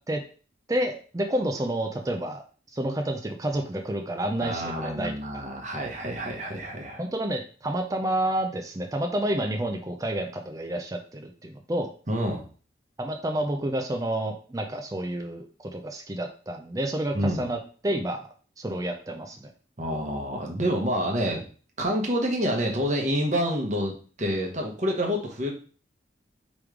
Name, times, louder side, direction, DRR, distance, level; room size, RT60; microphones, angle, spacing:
voice 1, 0.7-2.4 2.7-5.4 7.0-11.9 13.0-17.6 17.8-18.3 18.6-19.5, right 1 dB, 20° right, 4 dB, 0.4 m, -29 dB
voice 2, 4.4-7.0 12.1-12.5 17.1-17.4 19.8-21.5 21.8-25.5, equal, 40° right, 1 dB, 1.0 m, -28 dB
3.5 x 3.1 x 4.8 m, 0.39 s
head